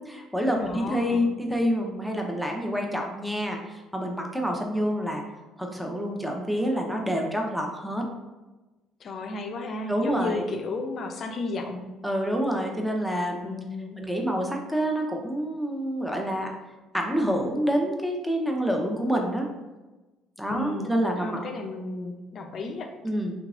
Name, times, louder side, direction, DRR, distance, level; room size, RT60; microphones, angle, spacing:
voice 1, 0.1-5.2 5.6-8.1 9.9-10.5 12.0-13.5 14.0-16.5 16.9-19.5 20.4-21.4 23.0-23.3, equal, ahead, 1 dB, 0.7 m, -27 dB
voice 2, 0.6-1.3 9.0-11.9 13.4-14.0 20.5-20.9 21.2-22.9, left 3 dB, 50° left, 4 dB, 0.5 m, -33 dB
3.6 x 2.9 x 2.4 m, 1.1 s
hypercardioid pair, 55°, 0 cm